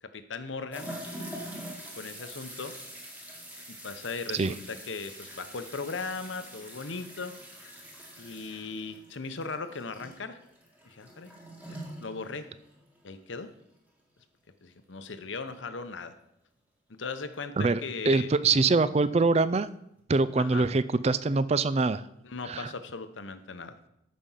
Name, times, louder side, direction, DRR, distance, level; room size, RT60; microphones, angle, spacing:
voice 1, 0.0-0.9 2.0-2.7 3.7-7.3 8.2-10.4 10.9-11.3 11.7-12.5 13.0-13.5 14.6-16.1 16.9-18.3 20.4-20.6 22.2-23.8, left 4 dB, 80° left, 10 dB, 0.8 m, -38 dB
sound 1, 0.7-13.1 13.4-13.5 15.5-15.6 17.3-17.4 19.0-19.1 20.0-20.1, right 1 dB, 10° right, 1.7 m, -45 dB
voice 2, 17.6-19.7 20.1-22.0 22.5-22.7, right 3 dB, 35° right, 15 dB, 0.4 m, -24 dB
13.5 x 5.3 x 5.6 m, 0.80 s
head